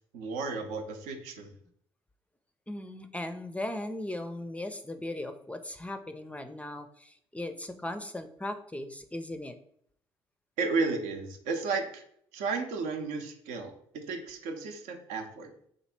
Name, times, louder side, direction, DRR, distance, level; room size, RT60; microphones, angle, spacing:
voice 1, 0.1-1.5 10.6-12.0 12.3-15.5, right 4 dB, 70° right, 4 dB, 0.7 m, -33 dB
voice 2, 2.7-9.6, left 1 dB, 10° left, 8 dB, 0.4 m, -38 dB
3.0 x 2.5 x 4.3 m, 0.66 s
hypercardioid pair, 50°, 13 cm